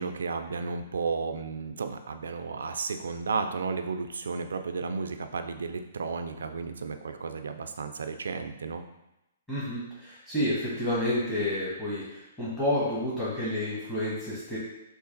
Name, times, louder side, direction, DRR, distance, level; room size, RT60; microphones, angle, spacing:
voice 1, 0.0-8.8, right 4 dB, 85° right, 7 dB, 0.3 m, -33 dB
voice 2, 9.5-14.6, left 1 dB, 10° left, -11 dB, 1.1 m, -30 dB
3.1 x 2.4 x 3.8 m, 0.92 s
hypercardioid pair, 140°, 0 cm